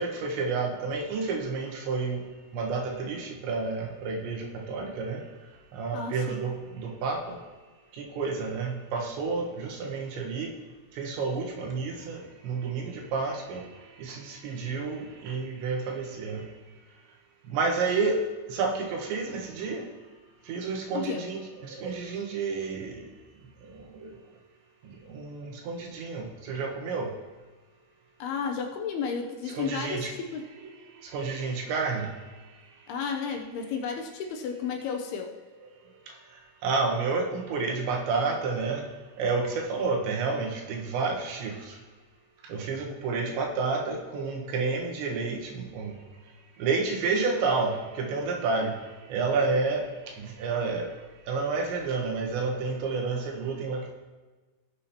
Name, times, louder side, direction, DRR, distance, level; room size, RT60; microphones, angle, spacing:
voice 1, 0.0-2.2 2.5-5.2 5.7-7.4 8.0-10.5 11.0-13.6 14.0-16.4 17.5-18.2 18.5-19.9 20.5-23.0 23.9-24.1 25.1-27.1 29.5-30.1 30.6-30.7 31.0-32.1 36.6-38.8 39.2-41.8 42.5-45.9 46.6-48.7 49.1-49.8 50.2-50.9 51.3-53.9, right 4 dB, 90° right, 1 dB, 3.6 m, -30 dB
voice 2, 5.9-6.4 20.9-21.2 28.2-30.4 32.9-35.3, left 6 dB, 80° left, 3 dB, 2.5 m, -32 dB
18.0 x 7.4 x 2.9 m, 1.3 s
omnidirectional pair, 5.0 m